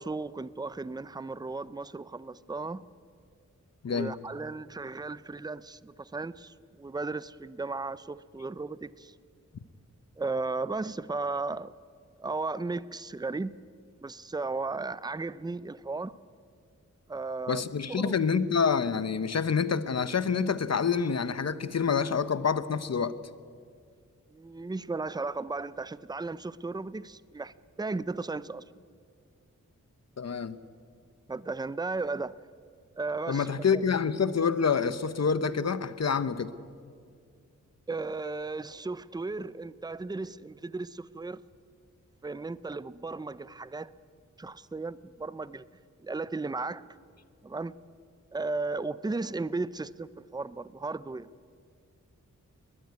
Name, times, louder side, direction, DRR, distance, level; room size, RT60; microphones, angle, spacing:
voice 1, 0.0-2.8 3.9-9.1 10.2-11.7 12.2-13.5 14.0-16.1 17.1-18.2 24.3-28.6 31.3-32.4 33.0-33.8 37.9-41.4 42.2-43.9 44.4-45.6 46.0-46.8 47.4-47.7 48.3-51.3, right 3 dB, 15° right, 17 dB, 0.5 m, -35 dB
voice 2, 3.8-4.1 17.5-23.1 30.2-30.6 33.3-36.5, left 6 dB, 55° left, 14 dB, 0.9 m, -27 dB
21.0 x 20.0 x 9.5 m, 2.2 s
wide cardioid pair, 120°, 31 cm